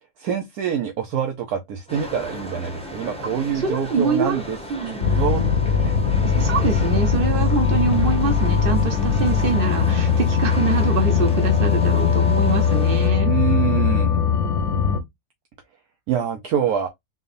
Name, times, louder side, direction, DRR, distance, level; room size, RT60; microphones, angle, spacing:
voice 1, 0.2-4.6 4.9-6.0 13.2-14.2 16.1-16.9, right 8 dB, 70° right, 1.2 m, -25 dB
sound 1, 1.9-13.1, left 1 dB, 5° left, 0.7 m, -36 dB
voice 2, 3.5-4.4 4.7-5.5 6.2-13.3, right 4 dB, 35° right, 1.3 m, -25 dB
sound 2, 5.0-15.0, left 6 dB, 55° left, 0.9 m, -20 dB
3.9 x 3.5 x 2.5 m
omnidirectional pair, 1.7 m